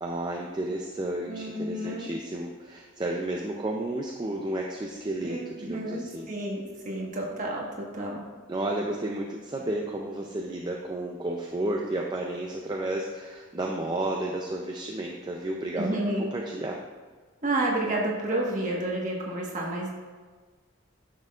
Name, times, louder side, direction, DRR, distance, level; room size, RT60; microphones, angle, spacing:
voice 1, 0.0-6.3 8.5-16.8, right 1 dB, 20° right, 0 dB, 0.4 m, -32 dB
voice 2, 1.3-2.1 5.2-8.2 15.8-16.3 17.4-19.9, right 1 dB, 40° right, -2 dB, 1.4 m, -30 dB
10.0 x 6.6 x 2.4 m, 1.4 s
head